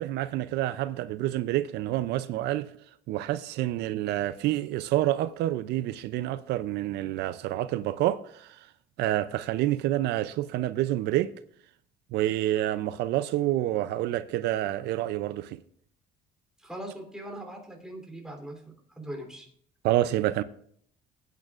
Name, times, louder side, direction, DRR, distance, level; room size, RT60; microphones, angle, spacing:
voice 1, 0.0-2.7 3.1-8.7 9.0-11.3 12.1-15.6 19.8-20.4, right 14 dB, 80° right, 0.5 m, -28 dB
voice 2, 16.6-19.4, right 1 dB, 5° right, 3.2 m, -41 dB
20.0 x 9.0 x 2.4 m
cardioid pair, 110°, 17 cm